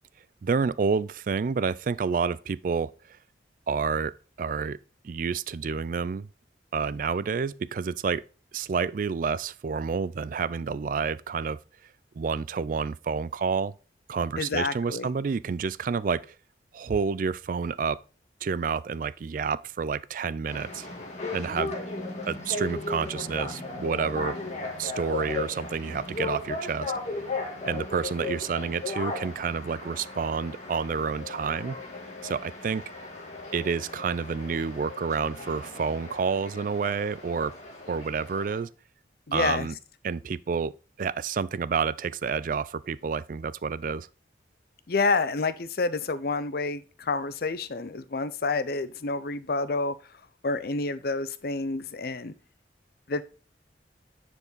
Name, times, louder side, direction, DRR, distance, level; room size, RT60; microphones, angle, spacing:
voice 1, 0.4-2.9 3.7-4.8 5.0-6.3 6.7-8.2 8.5-11.6 12.2-13.7 14.1-16.3 16.7-18.0 18.4-20.9 21.3-21.7 22.3-24.4 24.8-26.9 27.6-31.8 32.2-32.8 33.5-37.5 37.9-38.7 39.3-39.7 40.0-40.7 41.0-44.1, right 5 dB, 45° right, 0.3 m, -29 dB
voice 2, 14.4-15.1 39.3-39.7 44.9-49.9 50.4-52.3 53.1-53.2, left 3 dB, 55° left, 0.6 m, -28 dB
sound 1, 20.5-38.6, left 3 dB, 40° left, 1.6 m, -36 dB
9.9 x 4.5 x 4.0 m
head